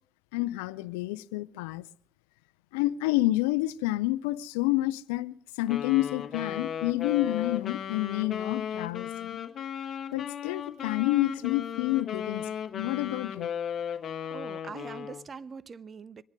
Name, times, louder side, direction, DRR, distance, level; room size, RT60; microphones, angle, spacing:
voice 1, 0.3-1.9 2.7-9.4 10.1-12.5 12.7-13.5, left 17 dB, 85° left, 0.5 m, -29 dB
Wind instrument woodwind instrument, 5.7-15.3, left 8 dB, 55° left, 1.3 m, -36 dB
voice 2, 14.3-16.2, right 5 dB, 45° right, 0.7 m, -42 dB
25.0 x 9.5 x 5.3 m
hypercardioid pair, 55°, 0 cm